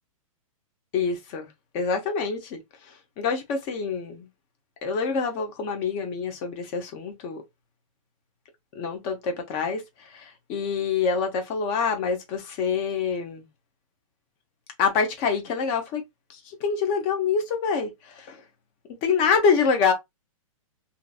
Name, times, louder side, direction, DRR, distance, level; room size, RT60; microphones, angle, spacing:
voice 1, 0.9-1.5 1.7-4.3 4.8-7.4 8.7-13.5 14.8-16.0 16.3-18.4 19.0-19.9, left 5 dB, 35° left, 0.9 m, -26 dB
2.8 x 2.7 x 2.3 m
hypercardioid pair, 145°, 18 cm